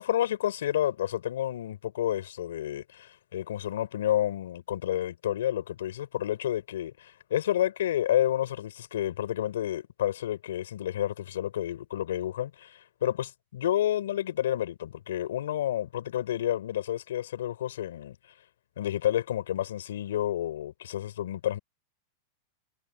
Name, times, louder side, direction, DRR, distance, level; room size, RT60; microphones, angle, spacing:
voice 1, 0.0-18.2 18.8-21.6, left 12 dB, 85° left, 3.9 m, -30 dB
supercardioid pair, 145°, 0 cm